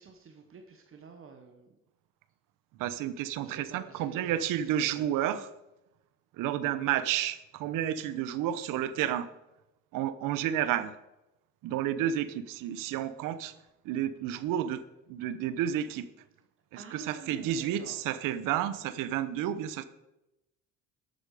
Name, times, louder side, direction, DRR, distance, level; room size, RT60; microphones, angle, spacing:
voice 1, 0.0-1.7 3.4-5.0 5.3-5.4 16.7-18.0, right 5 dB, 40° right, 4 dB, 1.3 m, -49 dB
voice 2, 2.8-5.5 6.4-9.3 9.9-10.9 11.6-13.5 13.8-14.8 15.1-16.1 16.7-19.8, right 11 dB, 80° right, 14 dB, 0.9 m, -31 dB
12.0 x 8.8 x 4.9 m, 0.94 s
cardioid pair, 125°, 32 cm